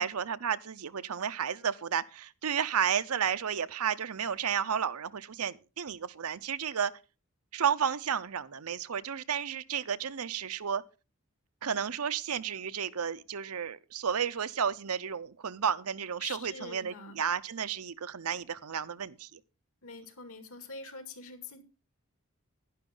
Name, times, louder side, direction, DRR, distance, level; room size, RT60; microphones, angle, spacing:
voice 1, 0.0-6.9 7.5-10.8 11.6-19.4, right 7 dB, 85° right, 0.7 m, -32 dB
voice 2, 16.2-17.2 19.8-21.6, left 4 dB, 75° left, 2.4 m, -45 dB
11.5 x 11.0 x 3.8 m
head